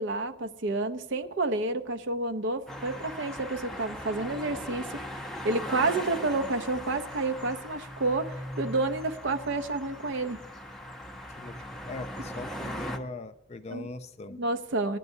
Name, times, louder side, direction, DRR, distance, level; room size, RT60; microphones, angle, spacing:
voice 1, 0.0-10.4 13.7-13.9 14.4-15.0, right 2 dB, 55° right, 8 dB, 0.6 m, -30 dB
sound 1, 2.7-13.0, equal, ahead, 0.7 m, -39 dB
voice 2, 11.3-14.4, left 2 dB, 30° left, 11 dB, 0.4 m, -40 dB
17.5 x 9.9 x 2.7 m, 0.85 s
head